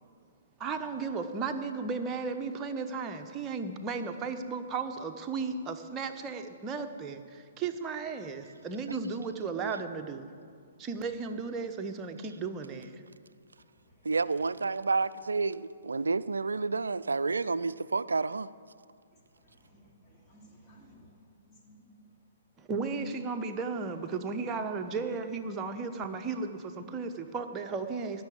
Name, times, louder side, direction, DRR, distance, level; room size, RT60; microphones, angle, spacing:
voice 1, 0.6-10.3 10.8-13.0 22.6-28.2, right 4 dB, 20° right, 1.0 m, -35 dB
voice 2, 14.0-18.5, right 4 dB, 70° right, 0.4 m, -30 dB
voice 3, 19.4-21.1 21.4-21.9 23.8-23.9, equal, 15° left, 2.9 m, -58 dB
15.5 x 6.9 x 9.4 m
figure-of-eight pair, 120°, 0 cm